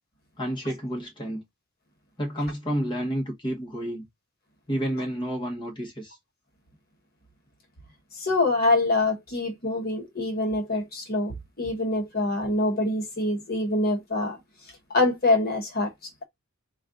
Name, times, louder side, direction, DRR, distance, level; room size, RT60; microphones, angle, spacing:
voice 1, 0.4-1.4 2.2-4.0 4.7-6.2, equal, 20° left, 1.1 m, -30 dB
voice 2, 8.2-14.4 14.9-16.2, left 2 dB, 45° left, 1.1 m, -25 dB
4.1 x 2.4 x 3.7 m
head